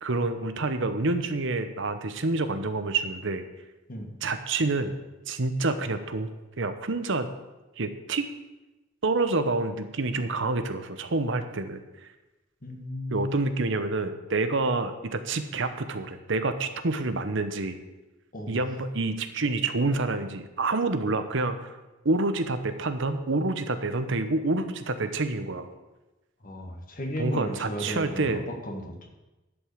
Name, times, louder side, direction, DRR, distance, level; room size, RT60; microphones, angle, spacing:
voice 1, 0.0-3.4 4.2-5.0 5.3-6.3 6.6-7.3 7.8-8.2 9.0-11.8 13.1-17.8 18.5-21.8 22.0-25.7 27.2-28.4, right 3 dB, 65° right, 9 dB, 0.9 m, -28 dB
voice 2, 12.6-13.6 18.3-18.6 26.4-29.1, equal, 45° left, 3 dB, 1.7 m, -34 dB
11.0 x 5.4 x 8.4 m, 1.1 s
head